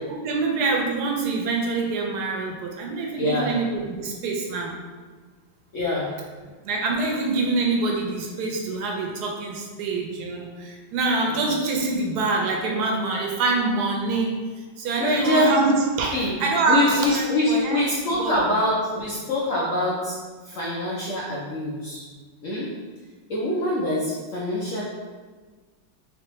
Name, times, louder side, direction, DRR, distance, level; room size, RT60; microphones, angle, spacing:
voice 1, 0.2-4.7 6.6-14.3 14.8-18.3, right 3 dB, 70° right, 1 dB, 1.0 m, -25 dB
voice 2, 3.2-3.6 5.7-6.1 11.3-11.4 15.0-15.5 16.1-16.4 16.7-20.2 20.4-22.0 22.4-22.7 23.3-24.8, left 1 dB, 70° left, -6 dB, 0.7 m, -24 dB
3.5 x 3.3 x 3.0 m, 1.4 s
omnidirectional pair, 2.0 m